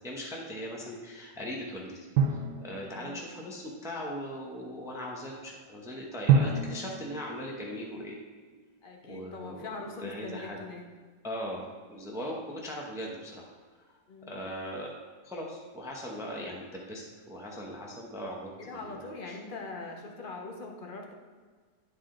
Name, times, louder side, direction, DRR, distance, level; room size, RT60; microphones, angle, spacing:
voice 1, 0.0-8.2 9.0-10.6 11.2-13.5 13.8-13.9 14.3-14.9 15.2-19.4, equal, 5° right, -1 dB, 0.7 m, -39 dB
Drum, 2.2-3.7 6.3-8.4, right 5 dB, 85° right, 1.3 m, -28 dB
voice 2, 2.7-3.2 8.8-10.9 14.1-14.4 18.6-21.1, left 3 dB, 35° left, 1 dB, 1.0 m, -42 dB
11.0 x 4.0 x 3.8 m, 1.5 s
omnidirectional pair, 1.7 m